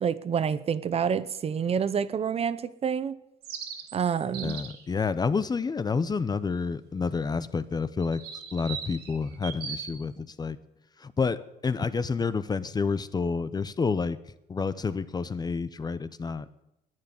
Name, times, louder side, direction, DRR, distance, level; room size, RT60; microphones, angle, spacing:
voice 1, 0.0-3.2 3.9-4.6, right 7 dB, 35° right, 15 dB, 0.6 m, -28 dB
sound 1, 3.4-4.8 8.0-9.9, right 7 dB, 75° right, 2.5 m, -39 dB
voice 2, 4.4-8.2 8.5-10.6 11.0-14.2 14.5-16.5, left 5 dB, 25° left, 15 dB, 0.6 m, -29 dB
10.5 x 9.4 x 9.5 m, 0.88 s
cardioid pair, 110°, 17 cm